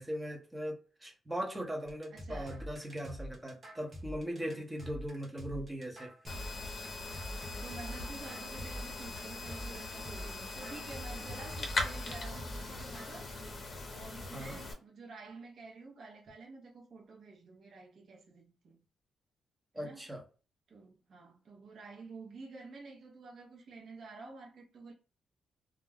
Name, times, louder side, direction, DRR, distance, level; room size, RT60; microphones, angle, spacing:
voice 1, 0.0-6.1 14.3-14.6 19.7-20.2, equal, 10° right, 0.7 m, -39 dB
sound 1, 1.9-13.2, equal, 30° right, 1.0 m, -45 dB
voice 2, 2.1-2.6 4.3-4.7 7.6-13.4 13.9-18.8 19.7-20.1 20.7-24.9, right 3 dB, 55° right, 0.7 m, -50 dB
sound 2, 6.3-14.7, left 2 dB, 40° left, 0.7 m, -40 dB
2.3 x 2.1 x 3.3 m
cardioid pair, 145°, 0 cm